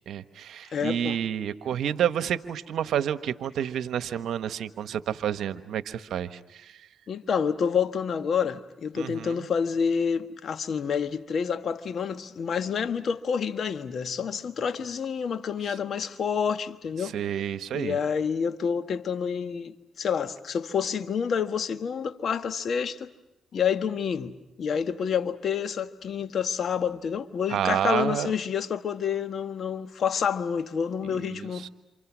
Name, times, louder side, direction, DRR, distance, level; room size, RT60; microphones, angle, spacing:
voice 1, 0.1-6.7 8.9-9.4 17.0-18.0 27.5-28.3 31.0-31.7, right 9 dB, 70° right, 1.2 m, -29 dB
voice 2, 0.7-1.2 7.1-17.2 17.7-23.1 23.5-31.7, left 7 dB, 60° left, 1.4 m, -28 dB
28.0 x 28.0 x 6.2 m
supercardioid pair, 65°, 0 cm